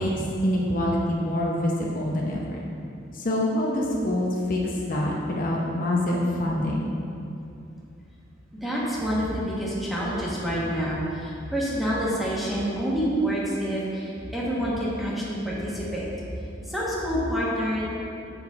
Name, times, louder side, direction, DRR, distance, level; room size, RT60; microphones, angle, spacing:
voice 1, 0.0-2.6 3.1-6.9, left 1 dB, 45° left, -3 dB, 0.7 m, -26 dB
voice 2, 8.5-16.1 16.7-17.9, equal, ahead, -7 dB, 1.2 m, -27 dB
6.9 x 6.4 x 3.6 m, 2.7 s
head